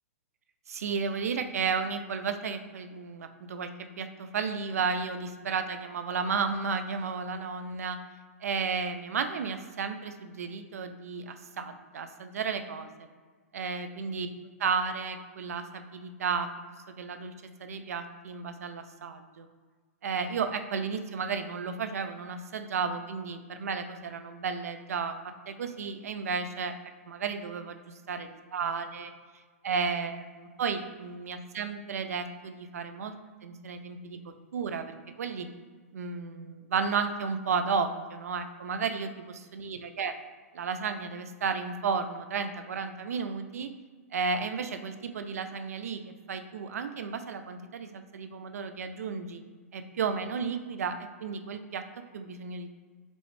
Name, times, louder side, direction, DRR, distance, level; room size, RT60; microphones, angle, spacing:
voice 1, 0.7-8.0 8.4-13.1 13.5-14.3 14.6-16.5 17.0-17.3 17.6-19.5 20.0-26.7 27.1-27.8 28.1-29.1 29.6-33.1 33.4-34.9 35.2-35.5 35.9-40.1 40.5-43.7 44.1-49.4 49.7-51.8 52.1-52.7, right 5 dB, 75° right, 8 dB, 0.5 m, -33 dB
5.2 x 3.1 x 3.3 m, 1.5 s
hypercardioid pair, 150°, 8 cm